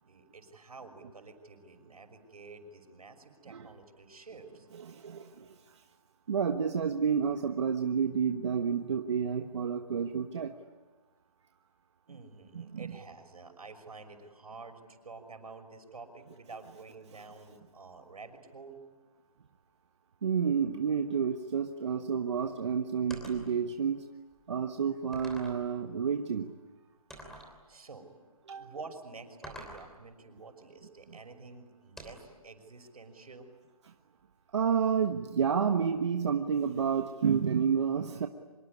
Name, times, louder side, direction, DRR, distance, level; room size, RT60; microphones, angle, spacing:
voice 1, 0.0-4.7 12.1-18.8 27.7-28.1 28.6-33.5, right 4 dB, 80° right, 6 dB, 5.9 m, -49 dB
voice 2, 4.8-5.8 6.3-10.5 12.5-13.0 20.2-24.1 24.5-26.5 28.5-28.7 34.5-38.3, right 7 dB, 50° right, 5 dB, 1.3 m, -30 dB
sound 1, 23.1-23.5 24.3-24.4 25.1-25.7 27.1-27.5 29.4-29.9 32.0-32.4, right 1 dB, ahead, 3.2 m, -46 dB
25.0 x 23.0 x 9.8 m, 1.3 s
hypercardioid pair, 165°, 19 cm